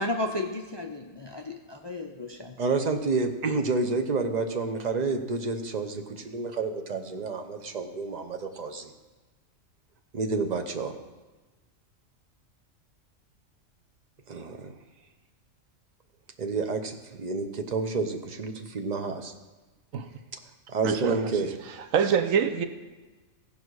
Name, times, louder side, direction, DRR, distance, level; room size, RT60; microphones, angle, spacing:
voice 1, 0.0-2.6, left 1 dB, 30° left, 2 dB, 0.5 m, -33 dB
voice 2, 2.6-8.9 10.1-10.9 14.3-14.7 16.4-19.3 20.7-21.5, right 3 dB, 40° right, 6 dB, 0.8 m, -29 dB
voice 3, 20.8-21.2 21.9-22.6, right 7 dB, 85° right, 8 dB, 1.2 m, -24 dB
16.0 x 5.4 x 4.7 m, 1.2 s
omnidirectional pair, 1.3 m